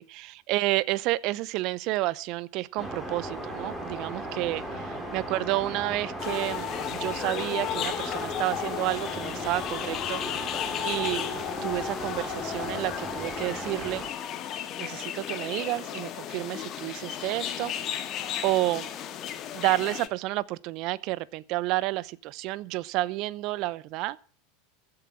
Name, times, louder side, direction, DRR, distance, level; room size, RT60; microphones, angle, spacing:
voice 1, 0.0-10.2 10.8-14.0 14.8-17.7 18.4-18.9 19.5-24.2, right 18 dB, 50° right, 0.8 m, -30 dB
sound 1, 2.8-14.1, right 1 dB, 10° right, 5.1 m, -37 dB
sound 2, 6.2-20.1, left 10 dB, 40° left, 1.8 m, -34 dB
15.5 x 8.9 x 7.4 m
figure-of-eight pair, 85°, 0 cm